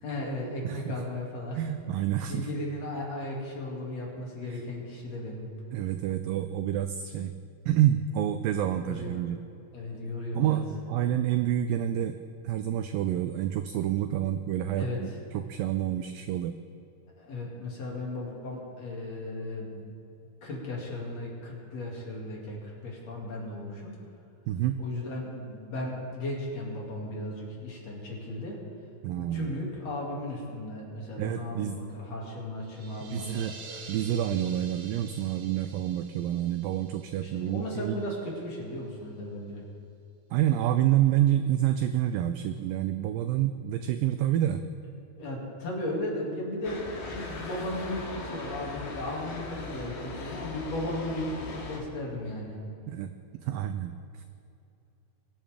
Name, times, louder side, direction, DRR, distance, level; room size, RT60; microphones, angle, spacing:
voice 1, 0.0-1.6 2.3-5.5 8.8-9.2 9.7-10.6 14.8-15.2 17.2-19.8 20.4-24.0 24.8-28.6 29.2-33.4 37.2-39.6 45.2-52.6, left 1 dB, 45° left, -3 dB, 3.4 m, -36 dB
voice 2, 0.6-1.0 1.6-2.5 4.4-4.6 5.7-7.3 7.7-9.4 10.3-12.2 12.4-16.6 24.5-24.8 29.0-29.5 31.2-31.8 33.1-33.5 33.9-38.0 40.3-44.7 52.9-53.1 53.4-54.2, right 11 dB, 90° right, 8 dB, 2.0 m, -28 dB
sound 1, 32.6-38.2, right 4 dB, 70° right, 1.3 m, -48 dB
sound 2, 46.6-51.8, left 3 dB, 75° left, 3.6 m, -39 dB
23.0 x 10.5 x 3.6 m, 2.7 s
omnidirectional pair, 4.6 m